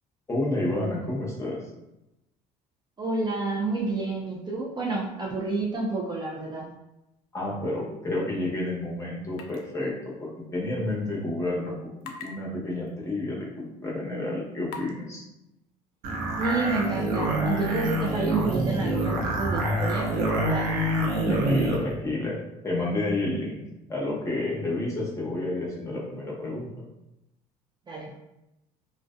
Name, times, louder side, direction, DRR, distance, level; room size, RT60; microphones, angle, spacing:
voice 1, 0.3-1.6 7.3-11.7 12.0-15.2 21.3-22.4 22.6-23.6 23.9-26.7, left 2 dB, 20° left, -4 dB, 0.9 m, -30 dB
voice 2, 3.0-6.7 16.4-20.8 21.1-21.4 27.9-28.1, right 3 dB, 25° right, -3 dB, 0.4 m, -29 dB
sound 1, 9.3-9.6 9.9-10.0 12.0-12.3 12.9-13.0 13.7-13.8 14.7-14.9, left 6 dB, 85° left, 0.4 m, -40 dB
sound 2, 16.0-21.8, right 1 dB, 65° right, 0.6 m, -26 dB
2.5 x 2.1 x 2.4 m, 0.91 s
supercardioid pair, 80°, 17 cm